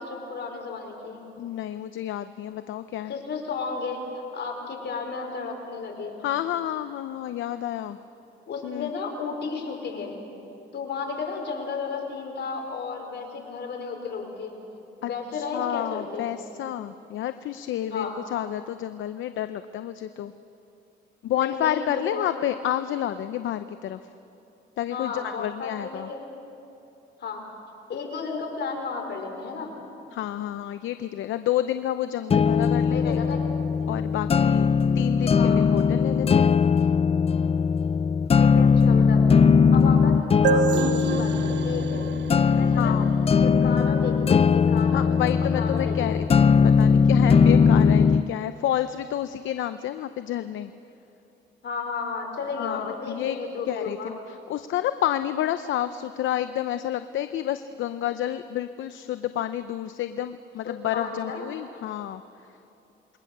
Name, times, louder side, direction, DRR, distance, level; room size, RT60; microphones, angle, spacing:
voice 1, 0.0-1.2 3.1-6.2 8.5-10.1 10.7-14.5 15.0-16.3 17.9-18.1 21.3-22.3 24.9-26.3 27.2-27.4 27.9-29.7 32.9-33.4 35.3-35.6 38.4-39.3 39.7-42.1 42.5-42.9 43.4-46.2 51.6-54.1 60.6-61.4, left 4 dB, 60° left, 2 dB, 4.8 m, -33 dB
voice 2, 1.4-3.1 6.2-8.0 8.6-8.9 15.0-20.3 21.2-24.0 24.8-26.1 30.1-33.2 33.9-34.7 34.9-36.5 42.8-43.1 44.9-50.7 52.6-53.4 53.7-62.2, left 12 dB, 75° left, 11 dB, 0.7 m, -30 dB
sound 1, 32.3-48.3, left 6 dB, 30° left, 0.4 m, -20 dB
sound 2, 40.4-44.0, right 7 dB, 65° right, 1.1 m, -29 dB
27.5 x 22.0 x 6.7 m, 2.9 s
cardioid pair, 90°, 20 cm